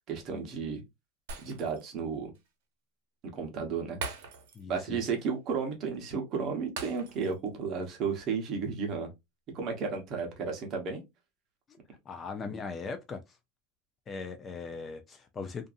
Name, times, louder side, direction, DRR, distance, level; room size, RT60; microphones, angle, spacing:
voice 1, 0.1-0.8 1.4-2.3 3.3-4.0 4.7-9.1 9.5-11.0, right 5 dB, 35° right, 0.9 m, -33 dB
Shatter, 1.3-2.0 2.3-2.5 4.0-4.8 5.1-5.2 6.8-7.5 7.8-8.0, right 4 dB, 80° right, 0.8 m, -41 dB
voice 2, 4.6-5.0 12.1-13.2 14.1-15.7, left 4 dB, 20° left, 0.3 m, -39 dB
2.6 x 2.5 x 2.4 m
supercardioid pair, 155°, 0 cm